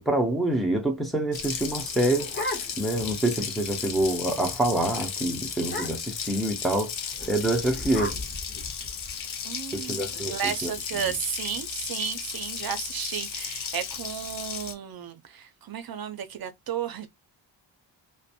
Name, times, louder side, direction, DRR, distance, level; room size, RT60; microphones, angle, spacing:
voice 1, 0.0-2.3 2.8-6.9 7.3-8.1 9.7-10.3 10.6-11.0, right 1 dB, ahead, 0.5 m, -26 dB
Water tap faucet, 1.3-14.7, left 7 dB, 75° left, 0.6 m, -35 dB
sound 1, 1.8-3.0 3.4-3.5 3.8-4.1 4.4-4.6 4.9-5.1 5.6-6.2 7.1-9.2, left 1 dB, 25° left, 0.8 m, -36 dB
voice 2, 9.4-17.1, right 8 dB, 50° right, 0.5 m, -33 dB
2.5 x 2.1 x 2.6 m
wide cardioid pair, 175°, 47 cm